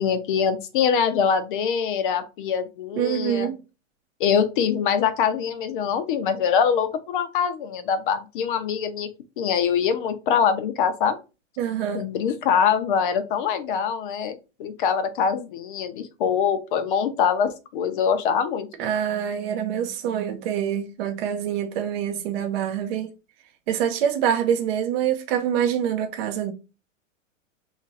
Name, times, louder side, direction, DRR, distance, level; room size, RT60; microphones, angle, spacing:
voice 1, 0.0-3.5 4.2-9.1 9.4-11.2 11.9-18.7, left 7 dB, 40° left, 0.5 m, -23 dB
voice 2, 3.0-3.6 11.6-12.1 18.8-23.1 23.7-26.5, right 9 dB, 50° right, 0.6 m, -25 dB
3.0 x 2.5 x 3.9 m
hypercardioid pair, 140°, 39 cm